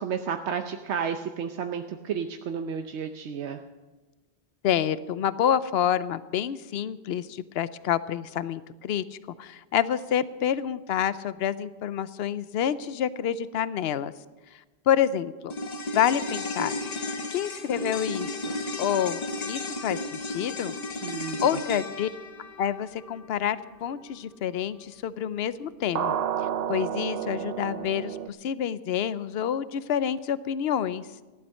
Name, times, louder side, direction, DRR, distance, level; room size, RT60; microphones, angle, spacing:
voice 1, 0.0-3.6 21.0-21.6, right 7 dB, 90° right, 6 dB, 1.0 m, -32 dB
voice 2, 4.6-9.0 9.4-14.1 14.9-15.5 15.9-16.7 17.3-20.7 21.4-22.1 22.6-26.2 26.7-31.1, left 9 dB, 70° left, 16 dB, 0.8 m, -28 dB
sound 1, 15.5-24.0 24.3-24.4, left 2 dB, 40° left, 1.0 m, -34 dB
sound 2, 25.9-28.3, right 9 dB, 65° right, 0.8 m, -30 dB
15.5 x 11.5 x 6.4 m, 1.2 s
omnidirectional pair, 1.1 m